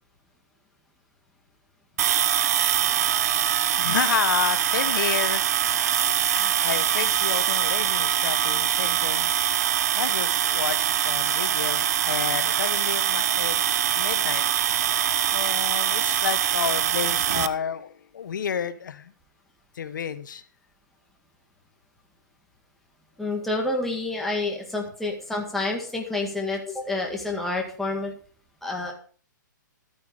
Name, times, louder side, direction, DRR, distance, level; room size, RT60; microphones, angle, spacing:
sound 1, 2.0-17.5, right 10 dB, 50° right, 0.8 m, -23 dB
voice 1, 3.8-5.4 5.8-6.0 6.3-14.4 15.0-19.1 19.7-20.4, left 7 dB, 70° left, 12 dB, 1.0 m, -31 dB
voice 2, 23.2-28.1 28.6-28.9, left 2 dB, ahead, -1 dB, 1.9 m, -28 dB
12.5 x 9.3 x 4.9 m, 0.43 s
hypercardioid pair, 155°, 11 cm